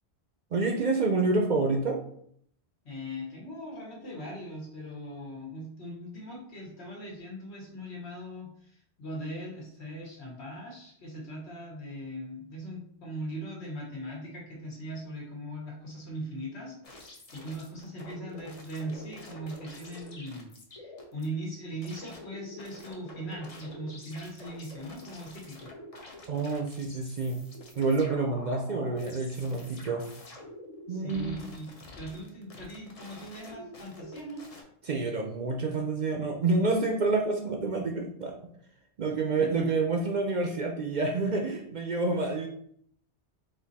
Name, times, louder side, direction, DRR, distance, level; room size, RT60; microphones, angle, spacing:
voice 1, 0.5-2.0 26.3-27.4 27.8-30.1 30.9-31.4 34.8-38.4 39.0-42.5, right 3 dB, 50° right, 2 dB, 0.6 m, -28 dB
voice 2, 2.8-25.7 30.9-31.7 31.9-34.4 39.4-39.7, equal, 75° left, -2 dB, 1.7 m, -40 dB
sound 1, 16.8-21.3 21.8-34.6, left 1 dB, 40° left, 0.7 m, -47 dB
4.2 x 2.7 x 4.0 m, 0.66 s
omnidirectional pair, 1.1 m